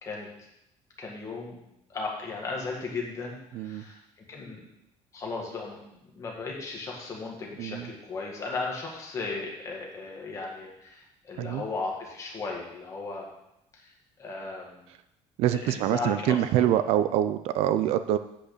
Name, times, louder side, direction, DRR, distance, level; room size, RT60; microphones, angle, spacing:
voice 1, 0.0-0.5 1.0-1.6 1.9-4.6 5.1-13.3 13.7-14.9 15.5-16.7, left 3 dB, 25° left, -1 dB, 1.9 m, -36 dB
voice 2, 3.5-3.8 7.6-7.9 11.4-11.6 15.4-18.2, right 11 dB, 60° right, 12 dB, 0.4 m, -25 dB
8.6 x 5.2 x 6.7 m, 0.84 s
cardioid pair, 175°, 12 cm